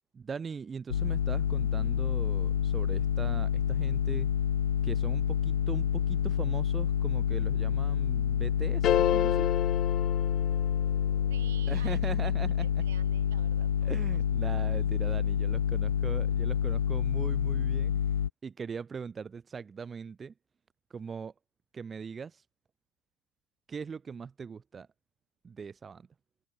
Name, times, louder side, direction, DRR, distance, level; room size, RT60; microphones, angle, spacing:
voice 1, 0.1-4.3 4.8-9.5 11.7-12.8 13.8-17.9 18.4-20.3 20.9-21.3 21.7-22.4 23.7-24.9 25.4-26.1, right 6 dB, 25° right, 1.1 m, -40 dB
sound 1, 0.9-18.3, left 9 dB, 80° left, 0.3 m, -28 dB
sound 2, 8.8-11.1, left 11 dB, 45° left, 0.8 m, -29 dB
voice 2, 11.3-12.0 12.6-14.2, right 14 dB, 70° right, 3.3 m, -51 dB
figure-of-eight pair, 75°, 0 cm